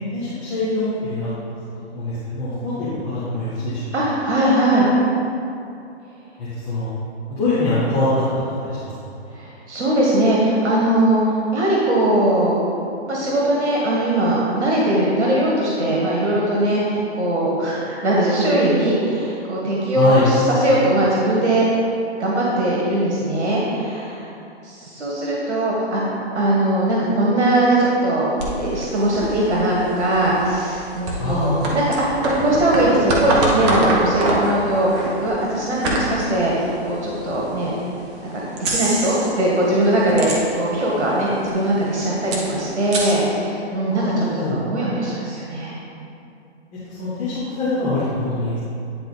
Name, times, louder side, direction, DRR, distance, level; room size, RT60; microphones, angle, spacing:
voice 1, 0.1-1.3 1.7-3.8 6.5-6.9 7.3-8.1 8.6-8.9 19.9-20.3 31.2-31.8 43.9-44.6 46.9-48.6, left 2 dB, 5° left, -12 dB, 0.4 m, -24 dB
voice 2, 3.9-4.9 9.3-12.6 13.1-21.7 22.2-24.3 24.6-28.3 28.6-37.7 38.3-46.1, right 1 dB, 85° right, -4 dB, 1.6 m, -20 dB
sound 1, 28.4-37.4 37.9-38.0 38.6-39.4 39.7-40.9 41.1-41.2 41.4-43.1, right 1 dB, 25° right, 1.0 m, -25 dB
9.9 x 3.9 x 4.0 m, 2.6 s
hypercardioid pair, 150°, 33 cm